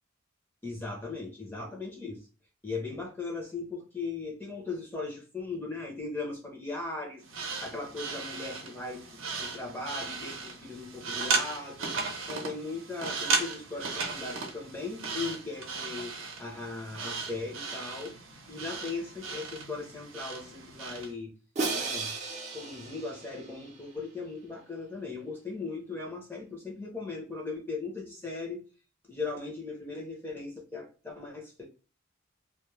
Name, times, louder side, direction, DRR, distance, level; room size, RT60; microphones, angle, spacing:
voice 1, 0.6-2.2 2.6-12.0 12.3-18.1 18.5-21.3 21.7-22.1 22.5-28.6 29.1-31.6, left 3 dB, 10° left, 0 dB, 0.6 m, -38 dB
sound 1, 7.2-21.1, right 4 dB, 80° right, 0.6 m, -36 dB
Crash cymbal, 21.6-23.8, right 3 dB, 35° right, 0.5 m, -34 dB
2.2 x 2.0 x 3.0 m, 0.34 s
head